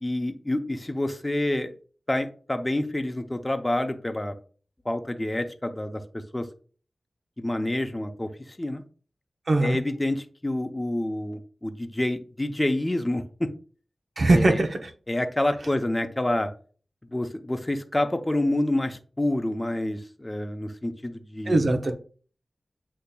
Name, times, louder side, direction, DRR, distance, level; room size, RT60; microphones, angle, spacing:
voice 1, 0.0-1.7 2.1-4.3 4.9-6.5 7.4-8.3 8.6-8.8 9.6-13.5 14.3-14.6 15.1-16.5 17.1-21.7, left 1 dB, 25° left, 6 dB, 0.6 m, -28 dB
voice 2, 9.5-9.8 14.2-14.9 21.5-21.9, right 2 dB, 65° right, 5 dB, 0.8 m, -21 dB
8.1 x 2.8 x 2.3 m, 0.40 s
cardioid pair, 40°, 0 cm